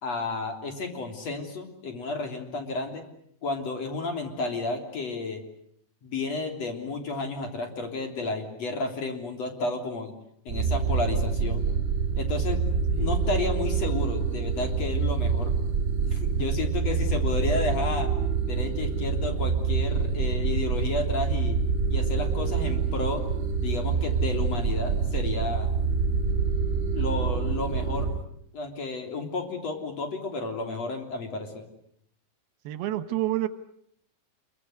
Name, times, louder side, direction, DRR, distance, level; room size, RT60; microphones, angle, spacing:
voice 1, 0.0-3.0 3.4-5.4 6.0-10.1 10.5-11.7 12.2-12.6 13.0-15.6 16.1-18.1 18.5-21.6 21.9-23.2 23.6-25.7 26.9-28.1 28.5-31.7, left 3 dB, 45° left, 4 dB, 4.3 m, -32 dB
sound 1, 10.5-28.2, right 5 dB, 40° right, 2.2 m, -26 dB
voice 2, 32.6-33.5, right 15 dB, 80° right, 11 dB, 3.2 m, -28 dB
27.5 x 23.5 x 8.0 m, 0.69 s
omnidirectional pair, 4.4 m